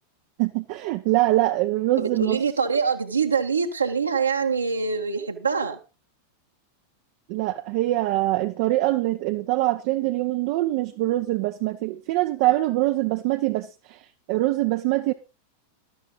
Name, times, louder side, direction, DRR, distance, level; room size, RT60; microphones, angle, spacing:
voice 1, 0.4-2.4 7.3-14.0 14.3-15.1, right 17 dB, 45° right, 0.9 m, -23 dB
voice 2, 2.0-5.8, right 5 dB, 80° right, 1.9 m, -24 dB
13.5 x 12.5 x 3.9 m
figure-of-eight pair, 90°, 0 cm